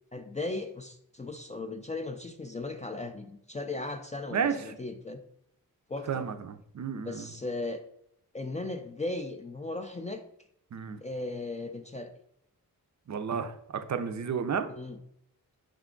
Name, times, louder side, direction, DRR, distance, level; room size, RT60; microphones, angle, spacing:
voice 1, 0.1-5.2 5.9-6.3 7.0-7.8 8.3-10.2 11.0-12.1 14.7-15.0, left 2 dB, 20° left, 6 dB, 0.3 m, -37 dB
voice 2, 4.3-4.7 6.1-7.3 10.7-11.0 13.1-14.7, right 6 dB, 50° right, 9 dB, 0.5 m, -32 dB
4.9 x 2.3 x 3.7 m, 0.74 s
cardioid pair, 75°, 37 cm